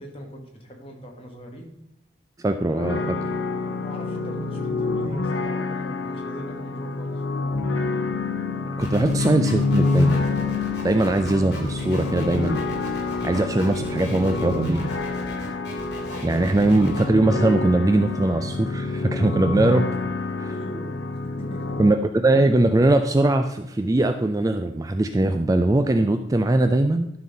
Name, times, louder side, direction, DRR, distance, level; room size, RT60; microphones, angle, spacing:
voice 1, 0.0-1.7 3.8-7.2 20.5-21.0 21.2-21.8, equal, 30° left, 0 dB, 1.7 m, -40 dB
voice 2, 2.4-3.3 8.8-10.2 10.8-12.6 13.0-14.9 16.2-19.9 20.4-20.5 21.8-22.0 22.2-27.1, right 2 dB, 15° right, 7 dB, 0.3 m, -21 dB
sound 1, 2.7-21.9, left 3 dB, 75° left, 1.0 m, -27 dB
sound 2, 8.8-17.0, left 1 dB, 55° left, 2.5 m, -38 dB
12.0 x 4.1 x 5.4 m, 0.79 s
head